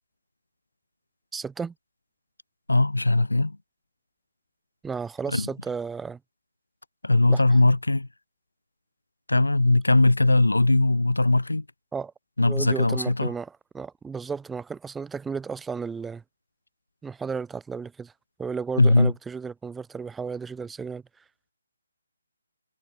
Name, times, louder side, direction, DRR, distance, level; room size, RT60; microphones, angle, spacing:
voice 1, 1.3-1.7 4.8-6.2 7.3-7.4 11.9-12.1 12.4-16.2 17.0-18.1 18.4-21.0, right 5 dB, 5° right, 3.9 m, -33 dB
voice 2, 2.7-3.6 5.3-5.5 7.0-8.1 9.3-11.6 12.4-13.3 18.8-19.1, left 2 dB, 85° left, 3.2 m, -20 dB
figure-of-eight pair, 150°, 0 cm